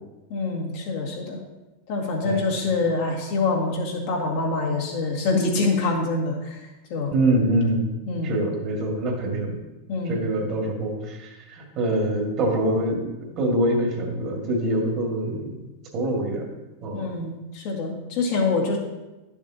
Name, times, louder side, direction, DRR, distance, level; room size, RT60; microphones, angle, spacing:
voice 1, 0.3-1.4 1.9-7.1 8.1-8.4 9.9-10.3 16.9-18.8, left 3 dB, 60° left, -2 dB, 2.1 m, -25 dB
voice 2, 7.1-7.8 8.2-9.6 10.1-13.0 13.4-15.6 15.9-16.5 16.8-17.1, right 1 dB, 45° right, 1 dB, 2.1 m, -24 dB
10.5 x 7.1 x 2.9 m, 1.0 s
hypercardioid pair, 110°, 0 cm